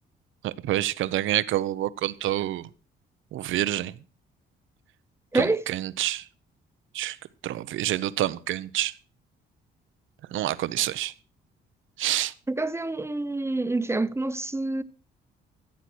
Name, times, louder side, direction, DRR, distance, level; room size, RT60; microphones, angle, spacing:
voice 1, 0.4-2.7 3.3-3.9 5.3-6.3 6.9-7.2 7.4-8.9 10.3-11.1 12.0-12.3, right 13 dB, 80° right, 0.8 m, -27 dB
voice 2, 5.3-5.6 12.5-14.8, right 2 dB, 15° right, 0.9 m, -27 dB
14.5 x 8.2 x 6.2 m
cardioid pair, 90°, 20 cm